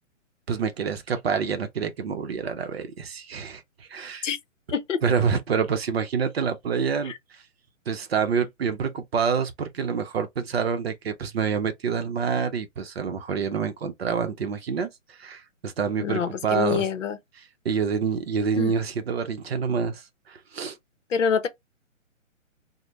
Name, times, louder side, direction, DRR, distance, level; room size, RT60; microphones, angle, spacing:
voice 1, 0.5-4.3 5.0-7.1 7.9-16.8 17.6-20.0 20.3-20.8, right 6 dB, 50° right, 0.6 m, -27 dB
voice 2, 4.7-5.0 7.0-7.2 16.0-17.2 18.5-18.7 21.1-21.5, left 7 dB, 65° left, 0.7 m, -26 dB
3.1 x 2.1 x 2.5 m
hypercardioid pair, 165°, 40 cm